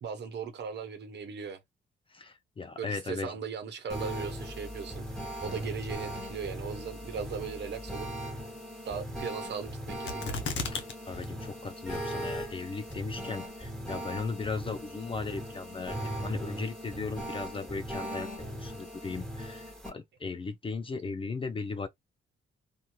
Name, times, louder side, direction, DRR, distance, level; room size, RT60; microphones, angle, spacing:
voice 1, 0.0-1.6 2.8-5.1 5.4-8.1 8.8-10.4, right 6 dB, 60° right, 1.0 m, -38 dB
voice 2, 2.1-3.3 10.7-21.9, left 4 dB, 25° left, 0.4 m, -37 dB
sound 1, 3.9-19.9, equal, ahead, 1.4 m, -39 dB
sound 2, 10.1-10.9 11.2-11.3 11.9-12.4 12.9-13.0, left 4 dB, 70° left, 0.8 m, -34 dB
2.9 x 2.6 x 2.2 m
cardioid pair, 90°, 20 cm